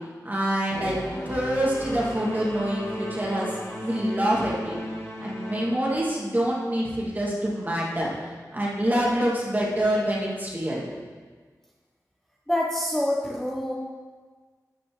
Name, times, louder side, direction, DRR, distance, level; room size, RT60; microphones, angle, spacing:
voice 1, 0.2-3.5 3.8-4.8 5.2-8.1 8.5-10.8, right 1 dB, 30° right, -5 dB, 2.2 m, -26 dB
Singing / Musical instrument, 0.7-5.7, left 1 dB, 40° left, 1.7 m, -34 dB
voice 2, 12.5-13.7, left 1 dB, 5° left, -4 dB, 0.9 m, -26 dB
13.0 x 6.3 x 3.1 m, 1.5 s
wide cardioid pair, 85°, 7 cm